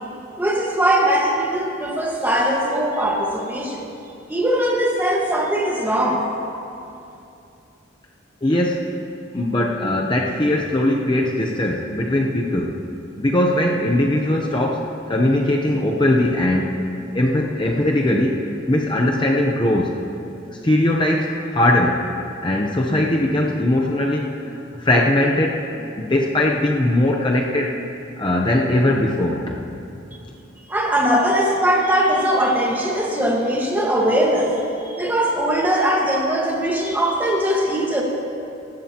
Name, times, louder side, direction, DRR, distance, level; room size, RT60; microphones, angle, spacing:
voice 1, 0.4-3.9 4.3-6.3 30.7-38.0, right 1 dB, 10° right, -1 dB, 1.5 m, -20 dB
voice 2, 8.4-8.8 9.3-12.8 13.2-16.7 17.1-20.0 20.6-22.0 22.4-24.3 24.7-25.6 25.9-27.7 28.2-29.6, left 1 dB, 25° left, -1 dB, 0.7 m, -20 dB
19.0 x 15.5 x 2.9 m, 2.7 s
head